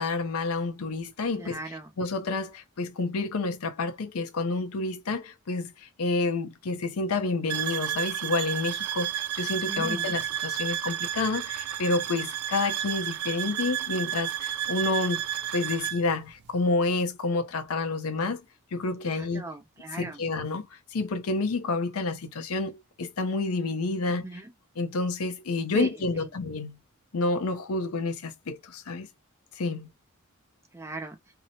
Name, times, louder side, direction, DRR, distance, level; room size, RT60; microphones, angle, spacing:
voice 1, 0.0-1.6 2.0-15.2 15.5-18.4 18.7-19.4 19.9-24.2 24.8-26.8 27.1-29.1 29.6-29.9, left 3 dB, 85° left, 0.6 m, -29 dB
voice 2, 1.4-1.9 9.7-10.1 19.0-20.2 24.1-24.5 25.7-25.9 26.1-26.3 30.7-31.2, right 2 dB, 15° right, 0.4 m, -38 dB
sound 1, 7.5-16.0, right 12 dB, 85° right, 0.4 m, -31 dB
2.8 x 2.0 x 2.7 m
head